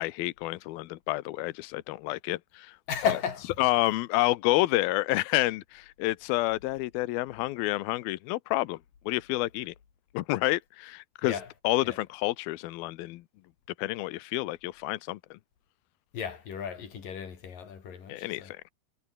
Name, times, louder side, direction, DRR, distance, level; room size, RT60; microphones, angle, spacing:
voice 1, 0.0-2.8 3.6-8.8 9.1-9.7 10.1-11.3 11.6-13.2 13.8-15.4 18.1-18.7, left 19 dB, 80° left, 2.1 m, -29 dB
voice 2, 2.9-3.4 11.2-11.5 11.8-12.0 16.1-18.5, left 7 dB, 50° left, 4.8 m, -34 dB
omnidirectional pair, 5.4 m